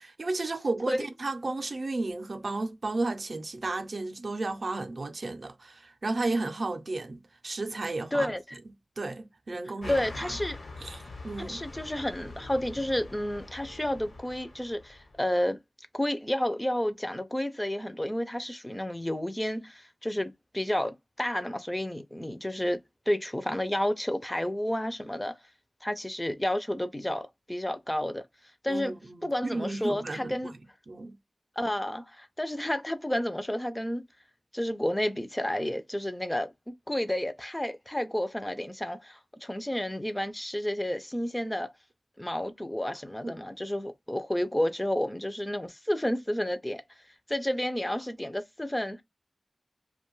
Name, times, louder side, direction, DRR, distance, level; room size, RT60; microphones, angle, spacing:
voice 1, 0.0-8.3 9.0-10.3 10.8-11.6 28.7-30.6 30.9-31.2 43.2-43.4, right 2 dB, 60° right, 0.4 m, -33 dB
voice 2, 8.1-8.6 9.9-10.6 11.4-15.6 15.9-22.8 23.1-25.4 25.8-28.2 28.6-28.9 29.2-30.5 31.6-34.0 34.5-41.7 42.2-46.8 47.3-49.0, left 1 dB, 15° left, 0.4 m, -31 dB
sound 1, 9.8-15.2, left 3 dB, 80° left, 1.0 m, -44 dB
2.5 x 2.2 x 3.0 m
wide cardioid pair, 85°, 0 cm